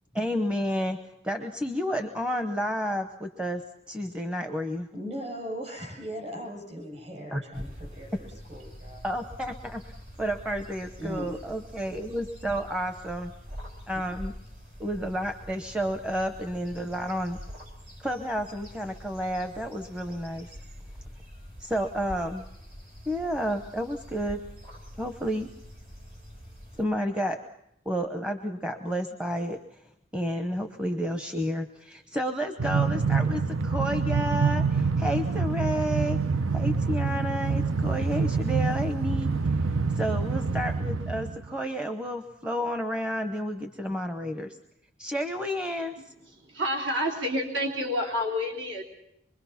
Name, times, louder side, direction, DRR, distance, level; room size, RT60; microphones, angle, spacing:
voice 1, 0.1-1.0 1.2-4.9 7.3-7.7 9.0-9.9 10.2-13.3 13.9-14.3 14.8-17.4 18.0-20.5 21.6-22.5 23.1-24.4 25.0-25.5 26.8-27.4 27.9-29.8 30.1-36.2 36.5-39.3 40.0-44.6 45.0-46.1, equal, 5° right, 6 dB, 0.8 m, -31 dB
voice 2, 4.9-9.0 11.0-11.4, equal, 35° right, 0 dB, 7.8 m, -38 dB
sound 1, 7.5-26.8, equal, 50° right, 4.1 m, -45 dB
Train, 32.6-41.5, right 4 dB, 90° right, 0.8 m, -26 dB
voice 3, 46.5-48.8, left 1 dB, 70° right, 1 dB, 3.4 m, -28 dB
25.0 x 23.0 x 5.8 m, 0.79 s
head